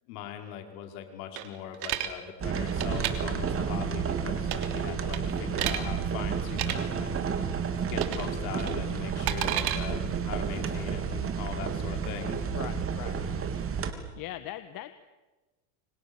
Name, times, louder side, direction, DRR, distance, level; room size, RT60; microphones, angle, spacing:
voice 1, 0.1-7.1 7.6-12.4, left 9 dB, 70° left, 5 dB, 5.4 m, -40 dB
sound 1, 1.4-2.1 2.7-3.1 4.4-4.8 5.1-5.8 6.5-6.7 8.0-8.3 8.6-9.8, right 14 dB, 55° right, 3.3 m, -31 dB
sound 2, 2.4-13.9, right 6 dB, 30° right, 3.4 m, -31 dB
voice 2, 12.5-13.3 14.2-14.9, left 13 dB, 50° left, 11 dB, 1.5 m, -40 dB
29.0 x 26.0 x 7.2 m, 1.2 s
supercardioid pair, 115°, 44 cm